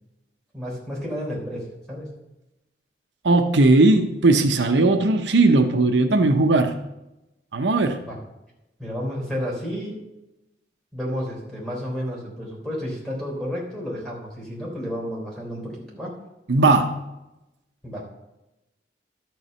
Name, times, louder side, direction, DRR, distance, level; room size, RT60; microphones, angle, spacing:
voice 1, 0.5-2.1 8.1-8.2 8.8-10.0 10.9-16.1 17.8-18.0, equal, ahead, -4 dB, 3.7 m, -31 dB
voice 2, 3.2-6.8 7.5-8.0 16.5-17.0, right 2 dB, 85° right, 6 dB, 0.8 m, -18 dB
12.0 x 4.7 x 6.8 m, 0.94 s
head